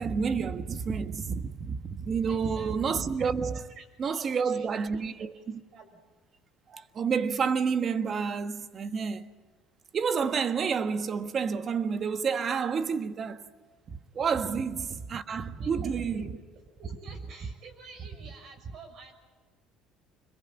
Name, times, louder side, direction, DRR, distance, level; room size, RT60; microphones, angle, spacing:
voice 1, 0.0-3.7 4.0-5.6 6.7-9.3 9.9-13.4 13.9-16.3, right 6 dB, 35° right, 1.5 m, -29 dB
voice 2, 2.3-2.7 3.7-5.4 5.7-6.0 14.5-14.6 15.6-16.3 16.8-19.1, right 3 dB, 50° right, 6.3 m, -50 dB
26.0 x 22.0 x 8.9 m
cardioid pair, 115°, 0 cm